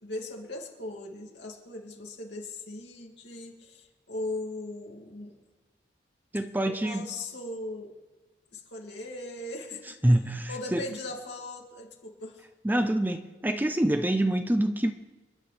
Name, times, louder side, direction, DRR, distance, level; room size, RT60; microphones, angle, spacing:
voice 1, 0.0-5.4 6.6-7.9 8.5-10.0 10.5-12.4, left 2 dB, 70° left, 0 dB, 2.4 m, -39 dB
voice 2, 6.3-7.1 9.8-10.9 12.6-14.9, right 1 dB, 10° right, 8 dB, 0.5 m, -26 dB
27.5 x 11.0 x 3.3 m, 1.2 s
head